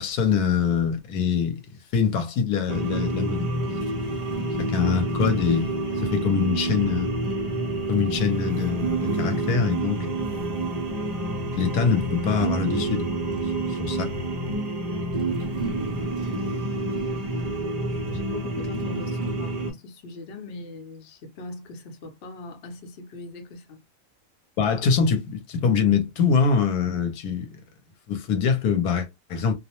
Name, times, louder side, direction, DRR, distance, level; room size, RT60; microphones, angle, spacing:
voice 1, 0.0-1.6 1.9-4.2 4.6-5.7 6.0-7.2 7.9-10.3 11.4-13.1 13.4-14.1 24.6-27.6 28.1-29.5, left 6 dB, 80° left, 1.1 m, -24 dB
sound 1, 2.7-19.7, right 2 dB, 55° right, 0.4 m, -28 dB
voice 2, 14.8-15.7 16.4-23.8, left 2 dB, 55° left, 0.8 m, -41 dB
2.6 x 2.1 x 2.8 m
omnidirectional pair, 1.6 m